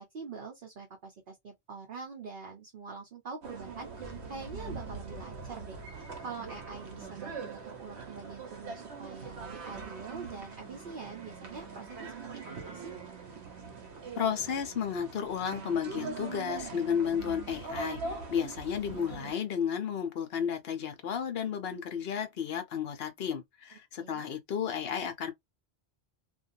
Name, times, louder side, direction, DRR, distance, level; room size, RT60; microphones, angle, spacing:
voice 1, 0.0-12.1 12.5-12.8 23.7-24.2, right 4 dB, 55° right, 0.9 m, -45 dB
sound 1, 3.4-19.3, right 4 dB, 85° right, 1.0 m, -42 dB
voice 2, 14.2-25.3, left 8 dB, 65° left, 0.9 m, -33 dB
2.6 x 2.3 x 2.6 m
omnidirectional pair, 1.1 m